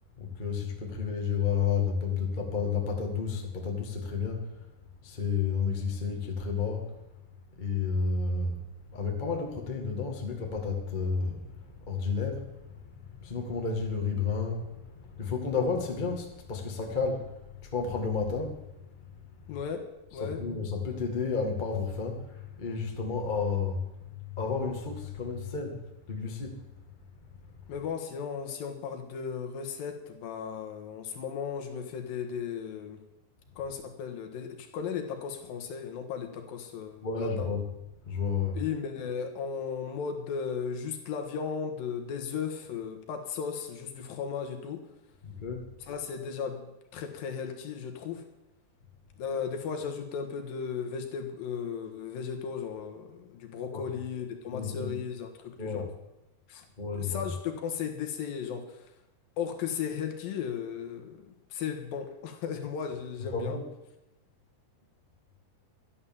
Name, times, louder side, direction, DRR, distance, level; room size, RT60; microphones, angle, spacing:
voice 1, 0.2-4.5 5.0-6.9 7.6-8.6 8.9-12.6 13.2-17.3 17.7-18.6 20.1-23.8 24.3-25.8 26.1-26.6 37.0-37.6 38.0-38.6 45.2-45.7 53.7-53.8 54.5-54.9 55.6-55.9 56.8-57.3 63.2-63.6, left 5 dB, 25° left, 1 dB, 0.9 m, -31 dB
voice 2, 19.5-20.4 27.7-33.0 33.6-37.5 38.5-44.9 45.8-48.3 49.2-55.9 56.5-58.9 59.4-63.6, left 7 dB, 65° left, 5 dB, 2.9 m, -36 dB
13.0 x 10.0 x 7.3 m, 0.94 s
omnidirectional pair, 4.7 m